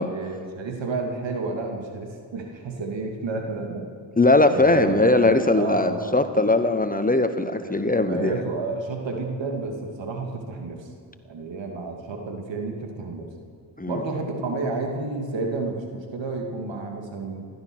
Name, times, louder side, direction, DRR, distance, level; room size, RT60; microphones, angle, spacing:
voice 1, 0.1-3.9 4.5-6.2 7.6-10.9 11.3-13.3 13.9-17.5, right 3 dB, 75° right, 2 dB, 2.5 m, -30 dB
voice 2, 4.2-8.4 13.8-14.0, left 2 dB, 20° left, 9 dB, 1.2 m, -20 dB
16.0 x 12.5 x 6.3 m, 2.2 s
supercardioid pair, 45°, 45 cm